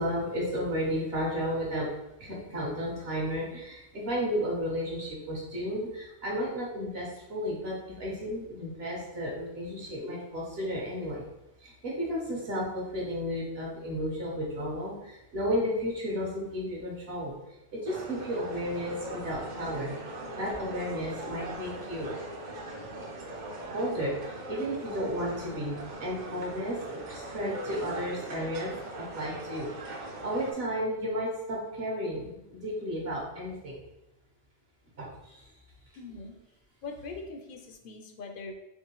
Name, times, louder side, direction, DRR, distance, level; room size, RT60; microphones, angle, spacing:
voice 1, 0.0-1.9 2.2-11.2 11.6-17.3 17.7-19.9 20.4-22.1 23.7-29.7 30.2-33.8 35.0-35.5, equal, 70° right, -3 dB, 1.3 m, -33 dB
sound 1, 17.9-30.5, right 1 dB, 55° right, 0.7 m, -40 dB
voice 2, 36.0-36.3 36.8-38.5, left 3 dB, 60° left, 4 dB, 0.7 m, -41 dB
3.6 x 3.0 x 2.9 m, 0.90 s
omnidirectional pair, 1.1 m